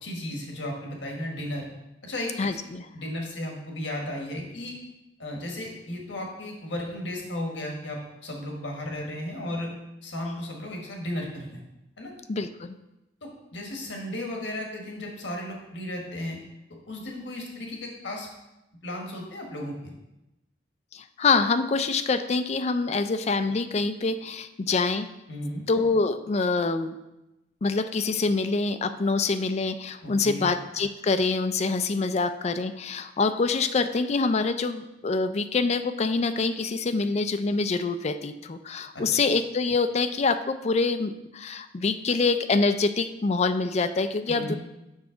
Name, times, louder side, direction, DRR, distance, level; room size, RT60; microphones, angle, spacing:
voice 1, 0.0-1.6 2.0-2.6 2.9-4.8 5.2-9.7 10.0-11.6 12.0-12.1 13.2-16.4 16.9-18.3 18.8-19.9 25.3-25.6 30.0-30.5 38.9-39.0 44.3-44.6, left 1 dB, 75° left, 0 dB, 1.5 m, -34 dB
voice 2, 2.4-2.8 12.3-12.8 20.9-25.1 25.7-27.0 27.6-44.6, left 4 dB, 35° left, 10 dB, 0.4 m, -25 dB
7.2 x 5.9 x 3.8 m, 0.94 s
head